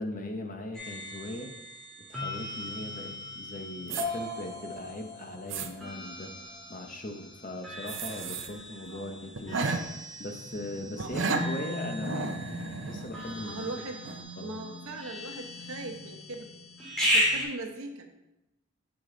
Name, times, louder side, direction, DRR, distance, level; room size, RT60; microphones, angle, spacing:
voice 1, 0.0-1.5 2.1-6.3 6.7-9.6 10.2-12.3 12.8-13.7 14.4-14.5, left 1 dB, 40° left, 4 dB, 0.8 m, -39 dB
sound 1, 0.7-17.4, equal, ahead, 1.9 m, -36 dB
sound 2, 3.9-4.1 4.8-4.9 5.3-5.7 7.9-8.5 8.9-9.0 9.4-9.8 11.0-11.5 12.0-13.7 14.0-14.2, right 4 dB, 65° right, 0.6 m, -33 dB
voice 2, 8.9-9.3 10.9-11.5 13.4-14.0 14.4-16.5 17.0-18.1, right 2 dB, 90° right, 4 dB, 1.0 m, -40 dB
7.2 x 4.9 x 3.8 m, 0.94 s
head